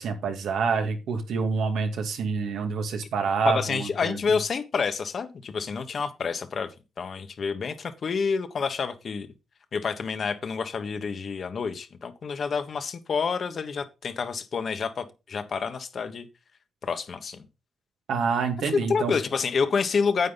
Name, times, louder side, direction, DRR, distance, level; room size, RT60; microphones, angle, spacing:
voice 1, 0.0-4.2 18.1-19.1, right 5 dB, 90° right, 2.2 m, -27 dB
voice 2, 3.4-6.7 7.0-9.3 9.7-16.3 16.8-17.4 18.9-20.3, left 5 dB, 50° left, 1.3 m, -28 dB
9.4 x 8.5 x 4.0 m
cardioid pair, 120°, 0 cm